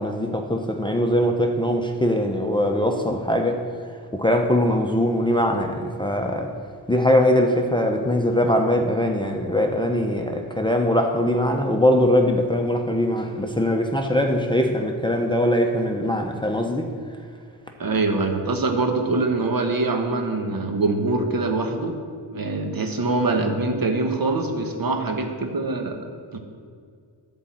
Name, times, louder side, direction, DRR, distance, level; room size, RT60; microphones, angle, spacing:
voice 1, 0.0-3.6 4.1-6.5 6.9-16.8, left 1 dB, 10° left, 3 dB, 0.7 m, -21 dB
voice 2, 17.8-22.0 22.3-26.0 26.3-26.4, right 3 dB, 50° right, 4 dB, 1.3 m, -24 dB
11.0 x 3.9 x 7.5 m, 2.2 s
cardioid pair, 65°, 46 cm